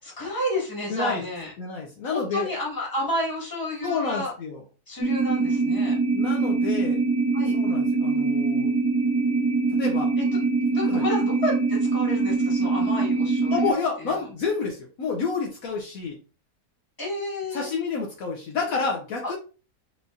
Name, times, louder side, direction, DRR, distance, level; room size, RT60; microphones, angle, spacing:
voice 1, 0.0-1.5 2.1-4.3 4.9-6.0 7.3-7.6 10.2-13.7 14.0-14.1 17.0-17.7 19.2-19.3, left 1 dB, 15° left, -3 dB, 1.7 m, -31 dB
voice 2, 0.9-1.2 1.6-2.5 3.8-4.6 6.1-7.0 7.5-8.7 9.7-10.1 10.9-11.0 13.5-16.2 17.5-19.4, left 4 dB, 65° left, 0 dB, 1.1 m, -29 dB
sound 1, 5.0-13.7, right 3 dB, 5° right, 0.5 m, -23 dB
4.7 x 3.2 x 2.6 m, 0.34 s
omnidirectional pair, 1.7 m